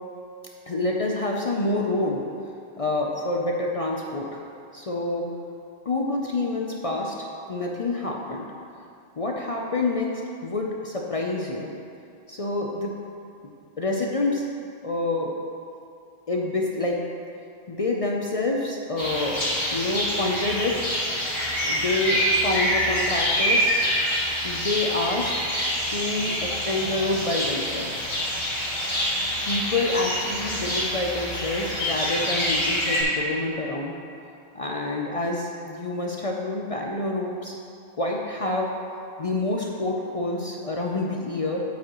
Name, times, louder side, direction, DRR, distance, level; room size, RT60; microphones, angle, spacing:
voice 1, 0.7-2.2 2.8-4.5 4.7-5.3 5.8-7.1 7.5-8.5 9.2-11.7 12.3-12.9 13.4-14.4 14.8-15.3 16.3-17.0 17.7-20.9 21.6-23.7 24.4-25.4 25.9-28.1 29.5-33.9 34.5-37.5 38.0-38.7 39.2-41.6, left 2 dB, 45° left, -1 dB, 0.5 m, -27 dB
sound 1, 19.0-33.0, equal, 70° left, 2.6 m, -26 dB
9.1 x 8.3 x 3.0 m, 2.5 s
omnidirectional pair, 1.2 m